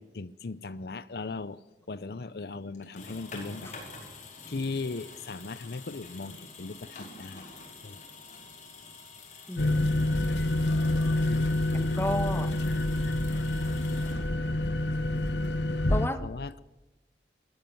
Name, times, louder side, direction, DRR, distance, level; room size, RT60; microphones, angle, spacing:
voice 1, 0.0-1.6 1.9-3.7 4.5-7.5 7.8-8.0 14.3-14.5 16.2-16.6, left 3 dB, 60° left, 0.6 m, -38 dB
sound 1, 2.7-14.7, left 4 dB, 40° left, 4.9 m, -47 dB
voice 2, 9.5-9.8 11.7-12.6 15.9-16.2, left 1 dB, 15° left, 1.1 m, -32 dB
sound 2, 9.6-16.1, left 1 dB, 85° left, 1.3 m, -27 dB
20.5 x 14.5 x 9.3 m
head